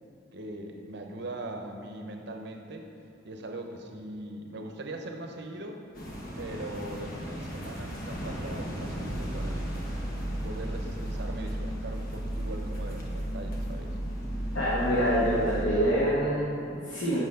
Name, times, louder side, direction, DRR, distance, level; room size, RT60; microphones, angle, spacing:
voice 1, 0.3-2.9 3.2-5.8 6.4-9.6 10.4-14.0, right 1 dB, 60° right, 4 dB, 0.7 m, -40 dB
sound 1, 5.9-15.7, equal, 50° left, 1.1 m, -38 dB
sound 2, 9.1-15.9, right 1 dB, 25° right, 1.7 m, -35 dB
voice 2, 14.5-17.2, equal, 70° left, -8 dB, 1.4 m, -26 dB
6.0 x 5.4 x 5.6 m, 2.6 s
head